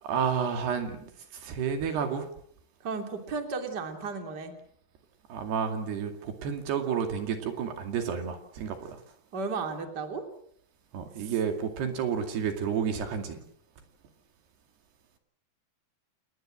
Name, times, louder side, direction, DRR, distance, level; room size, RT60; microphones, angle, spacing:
voice 1, 0.0-2.3 5.3-9.0 10.9-13.4, right 7 dB, 70° right, 6 dB, 4.3 m, -31 dB
voice 2, 2.8-4.5 9.3-10.2 11.2-11.3, right 4 dB, 25° right, 5 dB, 3.0 m, -34 dB
30.0 x 19.0 x 7.6 m, 0.65 s
omnidirectional pair, 4.9 m